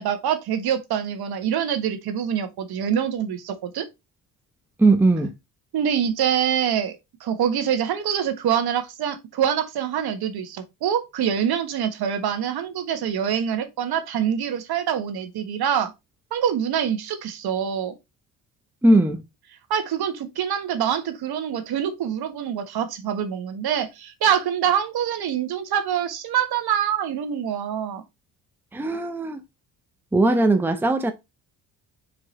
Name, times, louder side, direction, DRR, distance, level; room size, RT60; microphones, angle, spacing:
voice 1, 0.0-3.9 5.7-15.9 16.3-17.9 19.7-28.0, right 9 dB, 65° right, 1.5 m, -25 dB
voice 2, 4.8-5.3 18.8-19.2 28.7-29.4 30.1-31.1, right 2 dB, 5° right, 0.8 m, -19 dB
4.8 x 4.7 x 4.2 m
cardioid pair, 110°, 40 cm